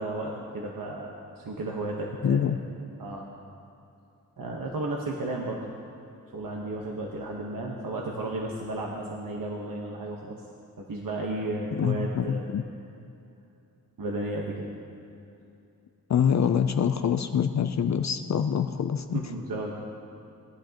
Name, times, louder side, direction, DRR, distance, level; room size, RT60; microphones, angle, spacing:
voice 1, 0.0-2.5 3.0-3.3 4.4-5.6 6.3-10.4 10.8-12.4 14.0-14.7 19.1-19.7, right 2 dB, 70° right, -1 dB, 1.2 m, -33 dB
voice 2, 2.2-2.6 11.7-12.6 16.1-19.2, left 8 dB, 50° left, 9 dB, 0.5 m, -25 dB
20.5 x 10.5 x 2.9 m, 2.6 s
wide cardioid pair, 90°, 36 cm